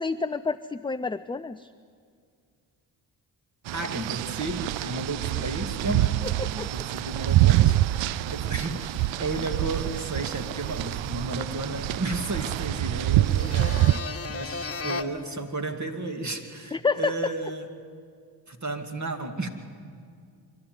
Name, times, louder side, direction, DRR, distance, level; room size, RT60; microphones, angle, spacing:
voice 1, 0.0-1.7 6.2-6.7 16.7-17.3, left 4 dB, 10° left, 11 dB, 0.4 m, -29 dB
voice 2, 3.7-17.7 18.5-19.5, right 2 dB, 35° right, 5 dB, 2.5 m, -33 dB
sound 1, 3.7-14.0, right 15 dB, 70° right, 0.5 m, -26 dB
sound 2, 9.3-12.8 13.2-15.0, left 4 dB, 30° left, 1.4 m, -38 dB
25.0 x 12.5 x 9.7 m, 2.2 s
supercardioid pair, 50°, 47 cm